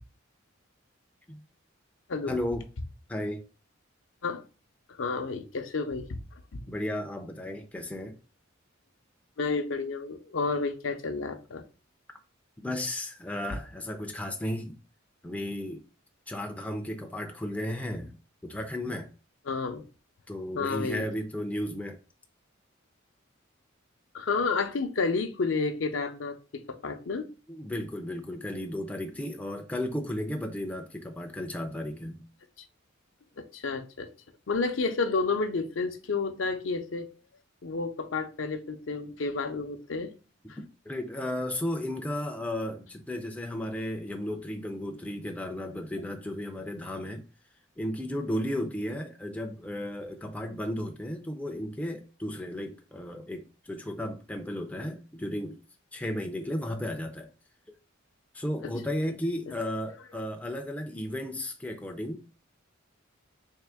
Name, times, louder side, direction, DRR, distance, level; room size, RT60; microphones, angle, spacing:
voice 1, 2.3-2.6 3.1-3.4 6.7-8.2 12.6-14.8 15.2-15.8 16.3-18.1 18.4-19.1 20.3-22.0 27.5-32.2 40.6-47.2 47.8-55.6 55.9-57.3 58.3-62.4, left 1 dB, 5° left, 0.4 m, -34 dB
voice 2, 5.0-6.2 6.5-6.7 9.4-11.6 19.5-19.8 20.5-21.1 24.1-27.3 33.4-34.1 34.5-37.1 37.6-40.1 40.5-40.6 58.6-58.8 59.5-59.6, left 4 dB, 65° left, 0.5 m, -30 dB
3.6 x 3.0 x 3.4 m
head